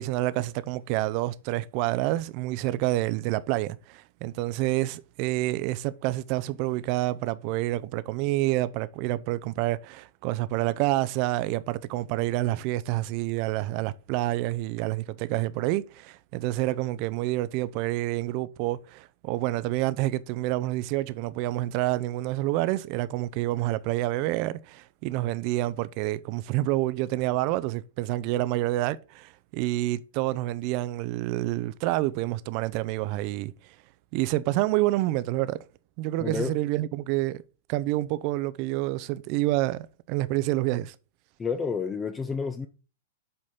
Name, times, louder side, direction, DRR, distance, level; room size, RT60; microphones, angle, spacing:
voice 1, 0.0-33.5 34.1-35.6 36.0-37.4 37.7-41.0, right 17 dB, 40° right, 0.5 m, -28 dB
voice 2, 36.2-36.5 41.4-42.7, left 5 dB, 15° left, 0.6 m, -30 dB
7.8 x 4.1 x 3.6 m
figure-of-eight pair, 105°, 0 cm